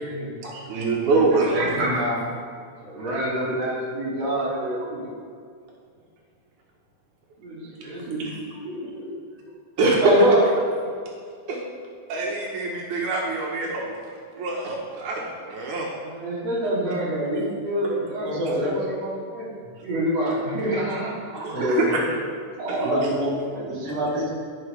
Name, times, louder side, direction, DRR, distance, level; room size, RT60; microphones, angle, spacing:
voice 1, 0.0-0.5 1.3-2.2 2.8-5.1 7.4-8.3 8.6-9.1 10.0-10.4 16.0-21.8 22.6-23.0 23.5-23.6, right 1 dB, 60° right, -7 dB, 3.4 m, -26 dB
voice 2, 0.5-1.6 8.2-8.4 9.8-10.0 11.5-11.6 12.1-13.9 14.4-15.9 21.4-22.0, right 3 dB, 85° right, -2 dB, 2.6 m, -25 dB
voice 3, 18.2-18.7 21.5-22.0 22.8-24.3, left 1 dB, 35° right, -6 dB, 2.3 m, -27 dB
15.5 x 5.7 x 3.4 m, 2.2 s
omnidirectional pair, 3.4 m